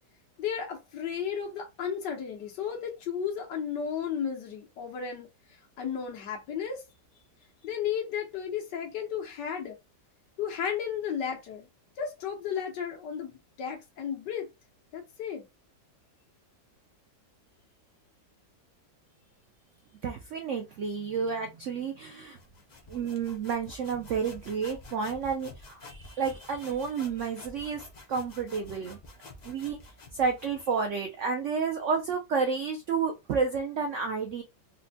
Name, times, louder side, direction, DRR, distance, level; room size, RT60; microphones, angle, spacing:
voice 1, 0.4-5.3 5.8-6.8 7.6-9.8 10.4-11.7 12.0-14.5 14.9-15.4, left 8 dB, 75° left, 1.6 m, -34 dB
voice 2, 20.0-22.4 22.9-27.8 28.1-29.0 29.4-29.8 30.1-34.4, right 5 dB, 80° right, 0.6 m, -30 dB
sound 1, 22.3-30.9, left 2 dB, 60° left, 0.4 m, -49 dB
4.2 x 2.1 x 2.7 m
omnidirectional pair, 1.9 m